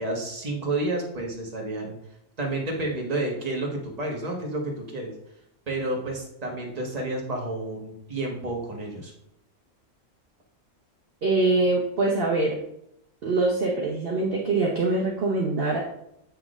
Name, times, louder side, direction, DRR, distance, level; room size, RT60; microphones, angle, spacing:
voice 1, 0.0-1.9 2.4-5.1 5.7-9.1, right 2 dB, 30° right, -1 dB, 1.3 m, -30 dB
voice 2, 11.2-12.5 13.2-15.8, right 2 dB, 50° right, -3 dB, 1.0 m, -23 dB
7.9 x 5.9 x 2.4 m, 0.80 s
omnidirectional pair, 1.3 m